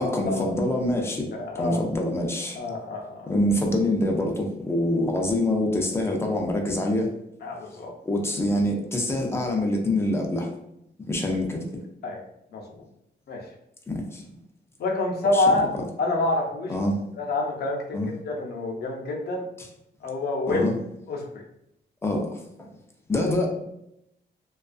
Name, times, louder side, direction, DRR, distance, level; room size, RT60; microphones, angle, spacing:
voice 1, 0.0-1.3 1.5-2.6 3.3-7.1 8.0-10.5 11.1-11.6 13.9-14.2 15.3-15.4 16.7-17.0 17.9-18.1 20.5-20.7 22.0-22.7 23.1-23.5, left 1 dB, 15° left, 1 dB, 0.4 m, -25 dB
voice 2, 1.3-1.8 2.6-3.3 7.4-7.9 12.0-12.2 12.5-12.6 13.3-13.4 14.8-15.7 16.0-16.7 17.2-19.5 20.0-20.7 21.1-21.4, left 2 dB, 60° left, 0 dB, 0.6 m, -27 dB
2.4 x 2.3 x 2.3 m, 0.81 s
wide cardioid pair, 170°, 19 cm